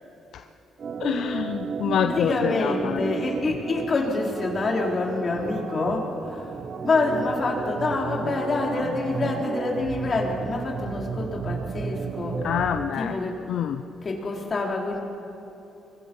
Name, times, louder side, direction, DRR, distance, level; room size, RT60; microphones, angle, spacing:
Organ, 0.8-12.9, right 6 dB, 50° right, 0.8 m, -33 dB
voice 1, 1.0-3.0 12.4-13.1 13.5-13.8, left 9 dB, 70° left, 8 dB, 0.6 m, -26 dB
voice 2, 2.1-6.6 6.8-12.4 13.0-13.4 14.0-15.0, left 3 dB, 40° left, -1 dB, 4.2 m, -26 dB
24.0 x 23.0 x 5.6 m, 2.9 s
cardioid pair, 90°, 0 cm